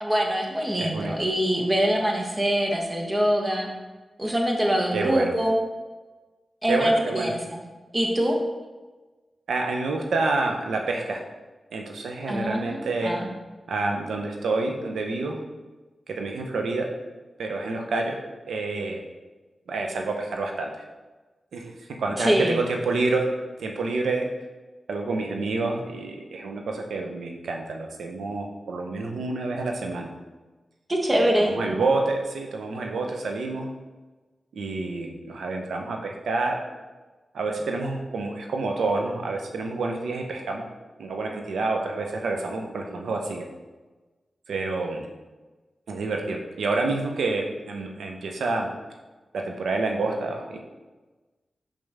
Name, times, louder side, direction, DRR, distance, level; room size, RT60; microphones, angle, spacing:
voice 1, 0.0-3.7 4.2-5.6 6.6-7.6 7.9-8.4 12.3-13.3 22.2-22.6 30.9-31.5, equal, 30° right, 1 dB, 1.3 m, -24 dB
voice 2, 0.8-1.1 4.9-5.3 6.7-7.3 9.5-11.2 11.7-13.1 13.7-15.4 16.1-16.9 17.4-18.2 18.5-19.0 19.7-20.7 21.5-21.7 22.0-23.3 23.6-24.3 24.9-30.1 31.1-33.7 34.5-36.6 37.3-40.7 41.0-43.4 44.5-45.1 45.9-48.7 49.5-50.6, right 3 dB, 85° right, 2 dB, 0.7 m, -28 dB
5.4 x 5.2 x 3.5 m, 1.2 s
cardioid pair, 45°, 0 cm